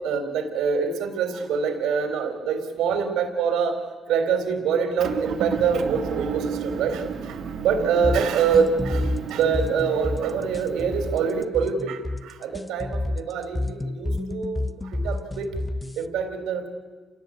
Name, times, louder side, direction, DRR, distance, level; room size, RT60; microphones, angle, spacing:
voice 1, 0.0-3.8 4.1-7.4 7.6-15.5 16.0-16.7, right 6 dB, 90° right, 7 dB, 3.6 m, -25 dB
Motor vehicle (road) / Engine, 5.0-11.4, right 6 dB, 70° right, 2.5 m, -33 dB
sound 1, 8.0-16.0, left 2 dB, 15° left, 0.8 m, -29 dB
28.0 x 17.5 x 8.6 m, 1.4 s
cardioid pair, 90°, 0 cm